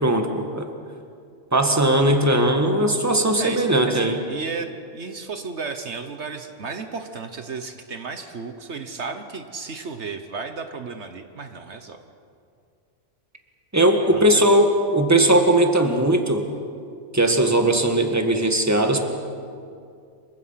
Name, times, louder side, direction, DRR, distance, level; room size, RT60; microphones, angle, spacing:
voice 1, 0.0-0.7 1.5-4.2 13.7-16.4 17.1-19.0, right 1 dB, 15° right, 4 dB, 1.8 m, -19 dB
voice 2, 3.4-12.0 14.1-14.6, right 4 dB, 65° right, 7 dB, 1.4 m, -34 dB
28.0 x 24.0 x 5.8 m, 2.4 s
omnidirectional pair, 1.3 m